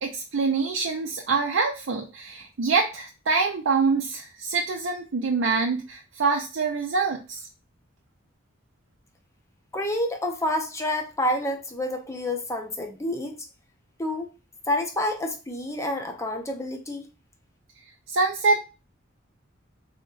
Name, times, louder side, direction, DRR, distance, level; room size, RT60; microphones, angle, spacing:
voice 1, 0.0-7.5 18.1-18.6, right 4 dB, 65° right, 0.5 m, -25 dB
voice 2, 9.7-13.5 14.0-14.3 14.7-17.0, left 1 dB, 15° left, 0.6 m, -28 dB
3.7 x 2.1 x 3.8 m
head